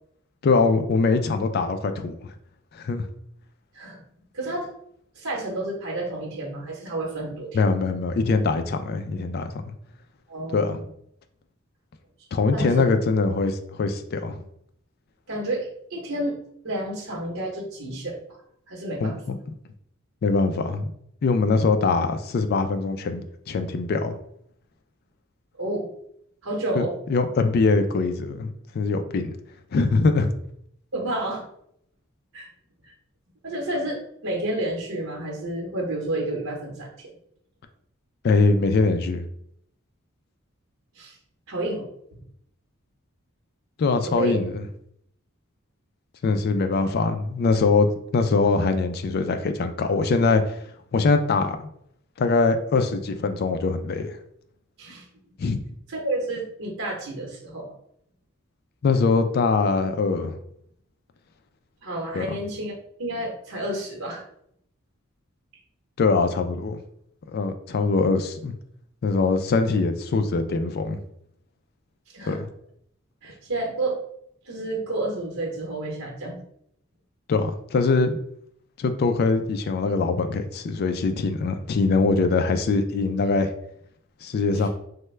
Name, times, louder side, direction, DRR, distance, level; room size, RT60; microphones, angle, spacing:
voice 1, 0.4-2.3 2.7-3.1 7.5-9.7 10.5-10.8 12.3-14.4 19.0-19.4 20.2-20.9 21.2-24.2 26.7-26.8 27.1-28.5 28.7-29.3 29.7-30.3 38.2-39.2 43.8-44.6 46.2-50.6 50.9-51.7 52.2-54.2 55.4-55.6 58.8-60.3 62.1-62.4 66.0-66.8 67.3-68.5 69.0-71.0 72.3-72.5 77.3-78.2 78.8-83.5 84.2-84.7, left 4 dB, 50° left, 8 dB, 0.3 m, -22 dB
voice 2, 4.3-4.7 5.1-7.5 10.3-10.8 12.5-12.9 15.3-16.4 16.6-18.2 18.7-19.2 25.6-25.9 26.4-26.9 30.9-31.4 32.3-32.5 33.4-37.1 40.9-41.2 41.5-41.9 44.0-44.4 46.8-46.9 54.8-55.0 55.9-57.7 61.8-62.7 63.0-64.2 72.1-72.4 73.2-74.0 74.4-76.4 84.6-84.7, right 1 dB, 85° right, -2 dB, 0.9 m, -30 dB
3.3 x 2.1 x 3.2 m, 0.71 s
head